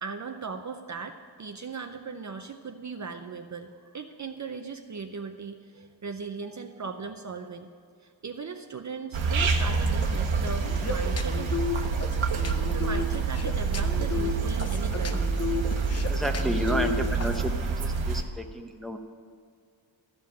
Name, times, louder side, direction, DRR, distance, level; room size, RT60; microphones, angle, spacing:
voice 1, 0.0-7.7 8.0-11.5 12.6-15.4, right 5 dB, 40° right, 6 dB, 0.6 m, -38 dB
sound 1, 9.1-18.2, right 4 dB, 85° right, 1.1 m, -27 dB
sound 2, 10.5-17.4, left 6 dB, 35° left, 0.7 m, -33 dB
voice 2, 16.1-17.5 17.8-19.0, right 1 dB, ahead, 3 dB, 0.8 m, -31 dB
14.0 x 5.6 x 8.7 m, 2.2 s
wide cardioid pair, 145°, 46 cm